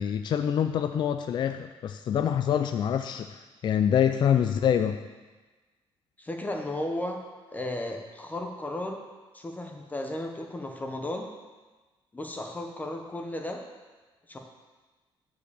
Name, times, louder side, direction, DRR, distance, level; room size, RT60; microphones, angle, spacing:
voice 1, 0.0-3.4 3.6-5.0, left 9 dB, 50° left, 8 dB, 0.4 m, -25 dB
voice 2, 6.2-7.2 7.5-9.0 9.3-11.3 12.1-13.6 14.3-14.4, left 1 dB, 15° left, 3 dB, 0.8 m, -34 dB
9.3 x 5.0 x 6.7 m, 1.3 s
cardioid pair, 130°, 10 cm